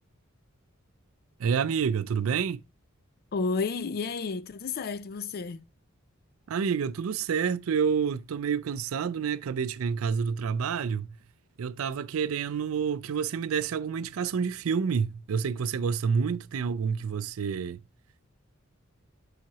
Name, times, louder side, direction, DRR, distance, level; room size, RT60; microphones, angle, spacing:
voice 1, 1.4-2.6 6.5-11.1 11.6-17.8, right 6 dB, 90° right, 0.4 m, -28 dB
voice 2, 3.3-5.6, left 4 dB, 45° left, 0.4 m, -31 dB
7.5 x 5.7 x 2.9 m
head